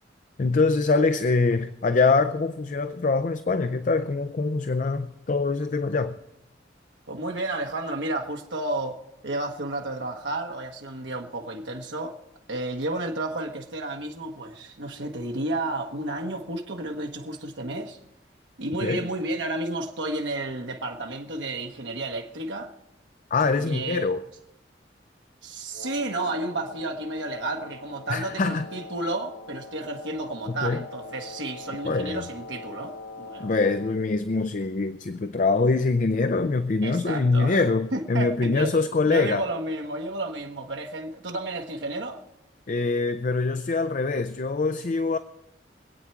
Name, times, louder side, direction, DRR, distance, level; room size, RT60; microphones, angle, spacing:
voice 1, 0.4-6.2 18.8-19.1 23.3-24.2 28.1-28.6 30.6-30.8 31.8-32.2 33.4-39.4 42.7-45.2, left 3 dB, 45° left, 0.5 m, -24 dB
voice 2, 7.1-9.0 9.2-12.2 12.5-18.0 18.6-22.7 23.5-24.1 25.4-33.5 36.8-38.7 39.0-42.2, right 2 dB, 90° right, 1.2 m, -32 dB
Wind instrument woodwind instrument, 25.7-34.0, left 3 dB, 80° left, 0.9 m, -43 dB
25.0 x 8.7 x 4.5 m
head